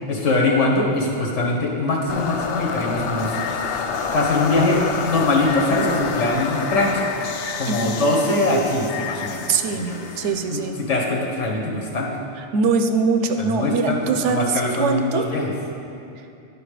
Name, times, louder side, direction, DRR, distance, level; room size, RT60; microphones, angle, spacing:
voice 1, 0.1-3.9 4.1-7.1 7.6-10.1 10.5-10.6 10.9-12.1 13.4-14.0 14.2-15.5, left 2 dB, 90° left, -2 dB, 1.6 m, -22 dB
sound 1, 2.1-11.1, left 5 dB, 65° left, 0.7 m, -28 dB
voice 2, 7.7-8.0 9.5-10.8 12.4-15.2, right 4 dB, 80° right, 6 dB, 1.0 m, -22 dB
11.0 x 5.2 x 4.9 m, 2.6 s
omnidirectional pair, 1.2 m